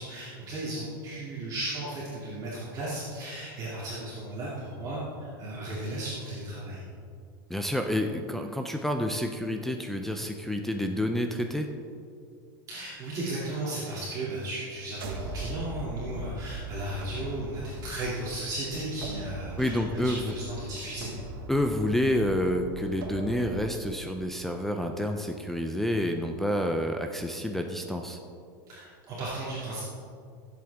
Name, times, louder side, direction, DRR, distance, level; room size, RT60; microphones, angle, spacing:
voice 1, 0.0-5.0 5.4-6.8 12.7-21.1 28.7-29.8, right 1 dB, 30° right, -8 dB, 2.5 m, -35 dB
voice 2, 7.5-11.7 19.6-20.3 21.5-28.2, left 1 dB, ahead, 3 dB, 0.5 m, -29 dB
sound 1, 14.9-23.7, right 1 dB, 90° right, 1.5 m, -40 dB
16.5 x 8.0 x 3.5 m, 2.3 s
supercardioid pair, 150°, 12 cm